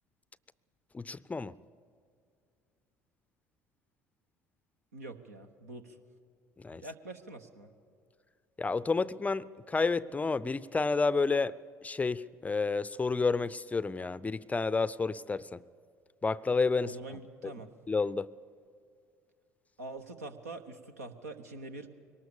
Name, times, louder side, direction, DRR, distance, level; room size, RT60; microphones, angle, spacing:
voice 1, 0.9-1.6 6.6-6.8 8.6-15.6 16.2-17.0 17.9-18.3, left 4 dB, 20° left, 0.5 m, -30 dB
voice 2, 4.9-6.0 6.7-7.7 16.8-17.7 19.8-21.9, right 2 dB, 80° right, 1.2 m, -45 dB
23.0 x 19.0 x 7.0 m
figure-of-eight pair, 60°, 8 cm